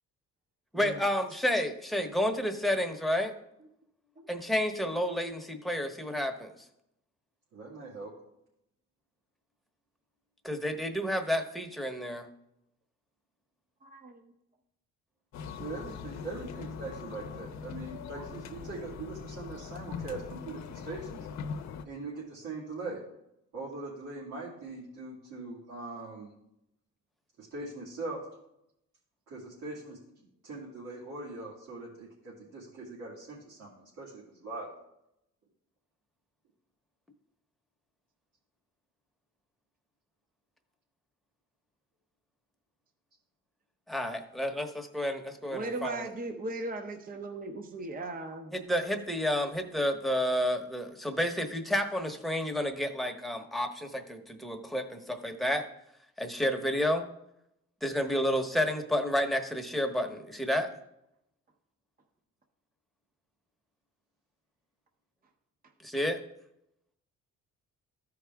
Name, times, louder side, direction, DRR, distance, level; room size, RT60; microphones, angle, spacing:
voice 1, 0.7-3.3 4.3-6.5 10.4-12.3 43.9-46.1 48.5-55.6 56.2-57.1 57.8-60.7 65.8-66.2, equal, ahead, 4 dB, 1.0 m, -30 dB
voice 2, 7.5-8.1 15.6-21.3 21.8-23.0 23.5-26.3 27.4-28.2 29.3-30.0 30.4-34.7, right 3 dB, 75° right, -7 dB, 2.6 m, -41 dB
voice 3, 13.8-14.3 18.1-18.2 45.5-48.5, right 2 dB, 30° right, 4 dB, 0.8 m, -38 dB
sound 1, 15.3-21.8, left 6 dB, 65° left, 0.7 m, -41 dB
13.5 x 4.8 x 3.5 m, 0.82 s
cardioid pair, 90°, 30 cm